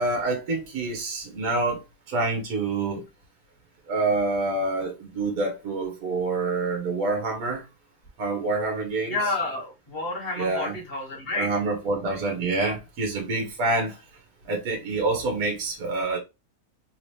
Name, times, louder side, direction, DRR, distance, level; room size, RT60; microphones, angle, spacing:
voice 1, 0.0-1.8 2.1-3.0 3.9-7.6 8.2-9.2 10.4-10.7 11.3-13.9 14.5-16.2, right 3 dB, 65° right, 1.5 m, -27 dB
voice 2, 9.1-11.5, left 2 dB, 35° left, 1.7 m, -30 dB
3.9 x 2.9 x 3.2 m
omnidirectional pair, 1.7 m